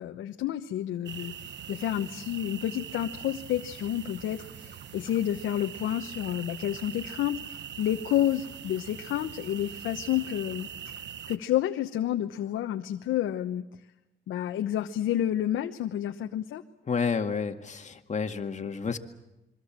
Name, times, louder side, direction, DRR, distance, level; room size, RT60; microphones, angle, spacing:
voice 1, 0.0-10.9 11.3-13.6 14.3-16.6, left 12 dB, 80° left, 5 dB, 1.0 m, -30 dB
sound 1, 1.0-11.4, right 9 dB, 65° right, 1.2 m, -42 dB
voice 2, 16.9-19.0, left 5 dB, 35° left, 6 dB, 2.0 m, -30 dB
27.0 x 23.5 x 7.5 m, 0.97 s
cardioid pair, 90°, 20 cm